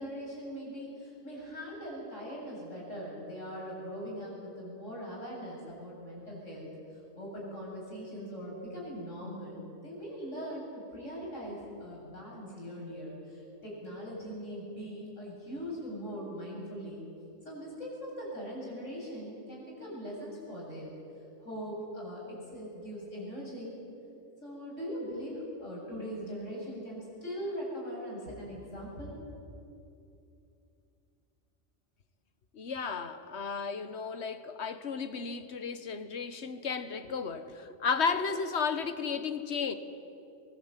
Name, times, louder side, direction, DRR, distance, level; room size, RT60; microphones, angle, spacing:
voice 1, 0.0-6.7 7.2-17.0 17.4-20.9 21.4-23.8 24.4-29.2, equal, 85° left, -4 dB, 8.6 m, -41 dB
voice 2, 32.5-39.7, left 5 dB, 65° left, 11 dB, 1.5 m, -33 dB
23.5 x 20.5 x 9.1 m, 2.8 s
omnidirectional pair, 1.3 m